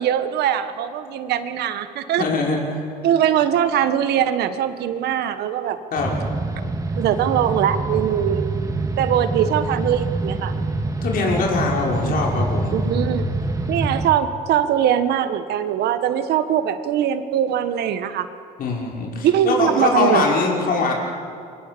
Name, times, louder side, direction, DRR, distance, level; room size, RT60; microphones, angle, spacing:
voice 1, 0.0-2.3 3.0-5.8 7.0-8.5 9.0-10.5 12.7-13.3 13.7-18.3 19.2-20.3, right 10 dB, 75° right, 10 dB, 1.6 m, -21 dB
voice 2, 2.2-2.8 5.9-6.2 11.0-12.7 18.6-20.9, left 4 dB, 60° left, -1 dB, 5.7 m, -22 dB
sound 1, 6.0-14.1, right 2 dB, 20° right, 2.0 m, -25 dB
28.5 x 24.5 x 7.0 m, 2.5 s
cardioid pair, 110°, 17 cm